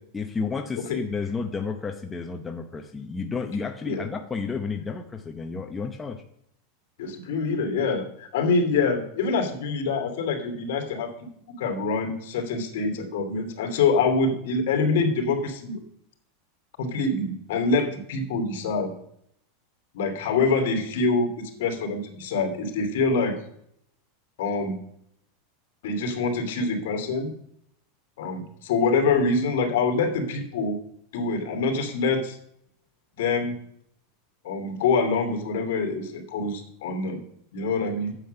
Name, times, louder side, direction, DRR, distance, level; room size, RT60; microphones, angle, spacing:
voice 1, 0.1-6.2, left 5 dB, 10° left, 4 dB, 0.7 m, -31 dB
voice 2, 7.0-11.1 11.6-15.8 16.8-18.9 19.9-23.3 24.4-24.8 25.8-27.3 28.2-30.7 31.1-32.4 33.1-33.5 34.4-37.2 37.5-38.1, left 4 dB, 70° left, 5 dB, 2.7 m, -25 dB
9.0 x 7.8 x 6.7 m, 0.71 s
supercardioid pair, 160°, 0 cm